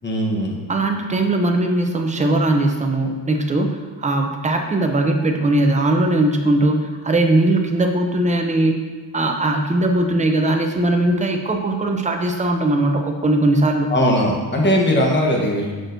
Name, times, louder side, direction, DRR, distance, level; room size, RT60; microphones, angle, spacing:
voice 1, 0.0-0.6 13.9-15.8, equal, 25° left, -1 dB, 1.0 m, -19 dB
voice 2, 0.7-8.7 9.1-13.9, right 2 dB, 15° right, 3 dB, 0.5 m, -19 dB
6.3 x 6.1 x 2.6 m, 1.5 s
wide cardioid pair, 140°, 44 cm